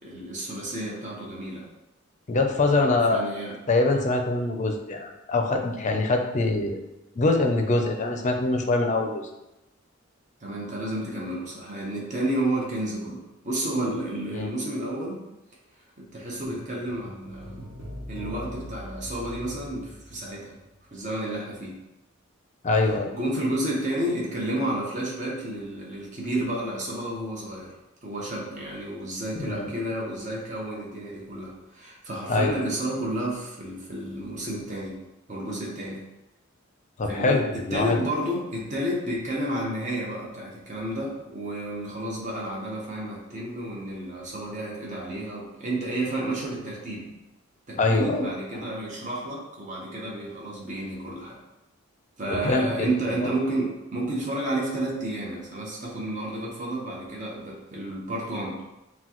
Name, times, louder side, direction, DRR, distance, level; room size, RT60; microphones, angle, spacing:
voice 1, 0.0-1.7 2.7-3.5 10.4-15.2 16.0-17.6 18.1-20.5 20.9-21.8 23.1-27.8 28.0-35.0 35.3-36.0 37.1-47.1 47.7-51.4 52.2-58.6, right 1 dB, 40° right, -4 dB, 1.0 m, -31 dB
voice 2, 2.3-3.2 3.7-6.8 7.2-9.2 14.3-14.5 22.6-23.2 29.3-29.7 32.3-32.6 37.0-38.0 47.8-48.3 48.5-48.7 52.3-52.9 53.2-53.3, left 2 dB, 35° left, 3 dB, 0.5 m, -24 dB
sound 1, 16.4-20.9 21.1-21.2, equal, 70° right, 1.0 m, -41 dB
5.9 x 2.2 x 3.0 m, 0.95 s
head